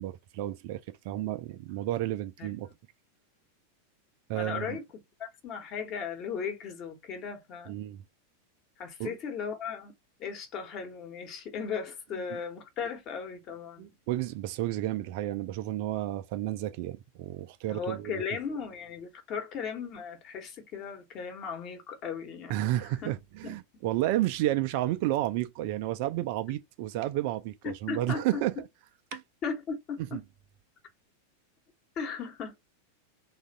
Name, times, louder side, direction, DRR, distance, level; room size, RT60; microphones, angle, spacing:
voice 1, 0.0-2.7 4.3-4.8 7.7-8.0 9.0-9.2 13.8-18.2 22.5-28.5 29.1-29.2 30.1-30.2, right 14 dB, 45° right, 0.4 m, -31 dB
voice 2, 2.4-2.7 4.3-4.8 5.2-7.8 8.8-9.9 10.2-13.9 17.7-22.5 22.8-23.1 23.4-23.6 27.6-28.4 29.4-30.2 32.0-32.6, left 6 dB, 35° left, 1.1 m, -37 dB
3.2 x 2.4 x 4.0 m
figure-of-eight pair, 90°, 0 cm